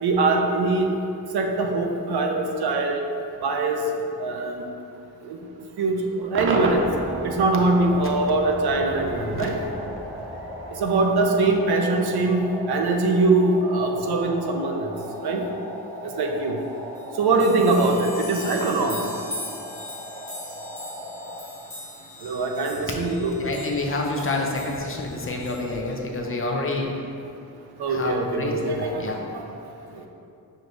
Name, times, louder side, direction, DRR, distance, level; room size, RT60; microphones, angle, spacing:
voice 1, 0.0-0.9 1.3-3.1 3.4-3.8 4.2-4.7 5.2-5.4 5.8-6.9 7.2-9.6 10.8-14.9 15.2-15.4 16.0-16.6 17.2-19.0 22.2-23.3 27.8-29.5 29.9-30.1, right 3 dB, 85° right, 2 dB, 0.6 m, -22 dB
Cheering / Crowd / Fireworks, 6.3-11.6, right 2 dB, 35° right, 0.4 m, -32 dB
sound 1, 6.7-21.4, equal, 5° left, 0.9 m, -39 dB
sound 2, 16.6-16.7 16.9-25.9, left 1 dB, 20° left, 1.4 m, -40 dB
voice 2, 23.4-26.9 27.9-29.2, left 2 dB, 35° left, 0 dB, 0.5 m, -28 dB
6.4 x 3.0 x 2.6 m, 2.6 s
wide cardioid pair, 115°, 38 cm